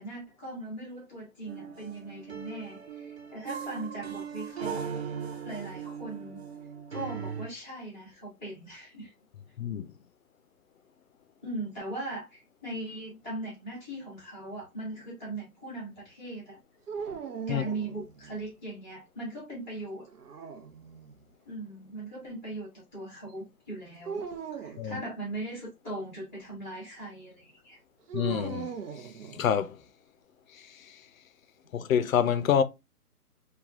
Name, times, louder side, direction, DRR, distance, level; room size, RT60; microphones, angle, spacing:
voice 1, 0.0-4.8 5.4-6.4 6.9-9.1 11.4-16.6 17.5-20.1 21.4-27.8, right 2 dB, 10° right, 0.7 m, -39 dB
sound 1, 1.5-7.5, right 7 dB, 45° right, 0.4 m, -39 dB
sound 2, 16.9-18.4 20.1-21.2 24.1-24.9 28.1-29.7, right 6 dB, 80° right, 0.8 m, -39 dB
voice 2, 28.1-28.7 29.4-29.8 31.7-32.6, left 8 dB, 60° left, 0.5 m, -26 dB
3.2 x 2.3 x 2.3 m
hypercardioid pair, 160°, 46 cm